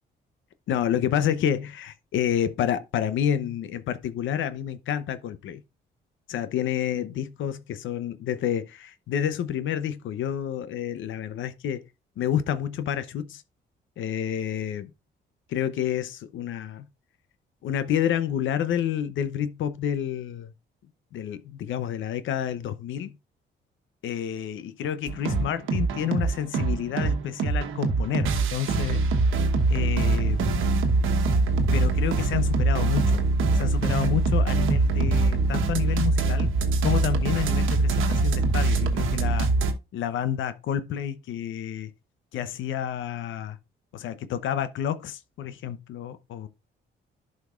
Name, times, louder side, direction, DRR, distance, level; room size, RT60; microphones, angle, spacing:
voice 1, 0.7-5.6 6.3-11.8 12.2-13.4 14.0-14.8 15.5-16.9 17.6-20.5 21.1-23.2 24.0-29.0 29.7-30.6 31.7-33.2 33.5-36.5 36.8-39.5 39.9-41.9 42.3-43.6 43.9-46.5, left 10 dB, 75° left, 0.8 m, -29 dB
sound 1, 25.1-39.7, right 3 dB, 85° right, 1.2 m, -23 dB
11.5 x 5.2 x 2.4 m
cardioid pair, 90°, 20 cm